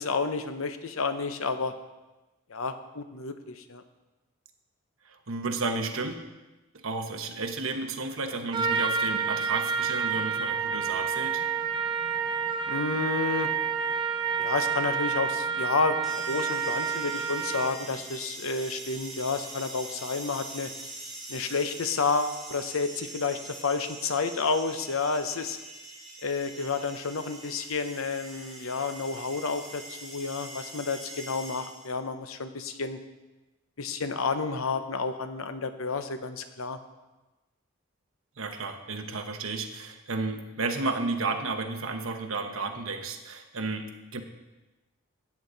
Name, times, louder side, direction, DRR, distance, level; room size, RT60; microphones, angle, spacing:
voice 1, 0.0-1.7 2.5-3.8 12.7-13.5 14.4-20.7 21.3-25.6 26.2-33.0 33.8-36.8, left 4 dB, 85° left, 9 dB, 0.8 m, -30 dB
voice 2, 5.1-6.2 6.7-11.4 38.4-44.2, right 3 dB, 85° right, 5 dB, 1.1 m, -32 dB
Trumpet, 8.5-17.9, right 6 dB, 20° right, 0.5 m, -29 dB
sound 1, 16.0-32.0, right 2 dB, ahead, 2.4 m, -43 dB
13.0 x 8.6 x 4.0 m, 1.1 s
head